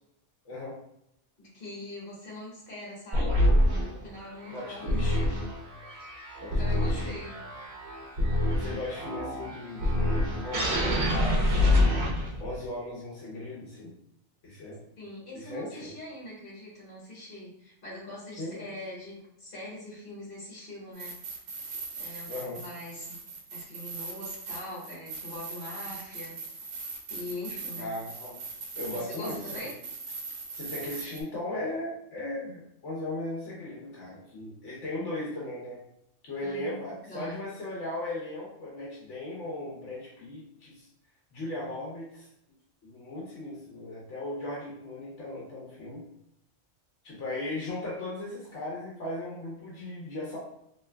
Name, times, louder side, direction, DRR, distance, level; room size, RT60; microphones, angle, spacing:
voice 1, 0.4-0.8 4.5-5.2 6.4-7.1 8.6-12.0 12.4-13.9 14.4-14.8 15.3-15.9 18.4-18.7 22.3-22.6 27.7-28.4 28.7-29.6 30.5-35.8 36.2-40.9 41.3-42.3 42.8-46.0 47.0-50.4, left 1 dB, 80° left, -5 dB, 1.2 m, -37 dB
voice 2, 1.4-3.4 4.0-5.4 6.3-7.4 8.8-9.0 15.0-21.2 22.0-23.2 23.5-26.4 27.1-27.9 28.9-29.8 36.4-37.4, left 1 dB, 50° left, -5 dB, 1.5 m, -42 dB
sound 1, 3.1-12.6, left 1 dB, 65° right, 1.0 m, -26 dB
sound 2, 20.9-31.2, right 4 dB, 90° right, 1.0 m, -40 dB
3.2 x 3.0 x 2.3 m, 0.77 s
omnidirectional pair, 1.2 m